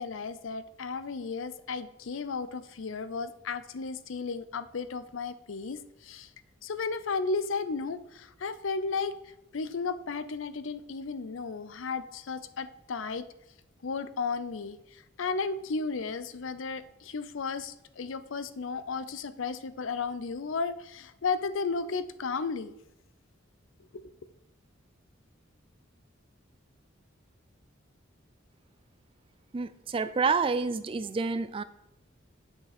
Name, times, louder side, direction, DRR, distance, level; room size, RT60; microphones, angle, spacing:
voice 1, 0.0-6.3 6.6-9.1 9.5-13.2 13.8-14.8 15.2-22.7, left 4 dB, 75° left, 13 dB, 0.5 m, -34 dB
voice 2, 29.5-31.6, right 4 dB, 25° right, 14 dB, 0.3 m, -28 dB
7.8 x 6.4 x 4.2 m, 0.89 s
head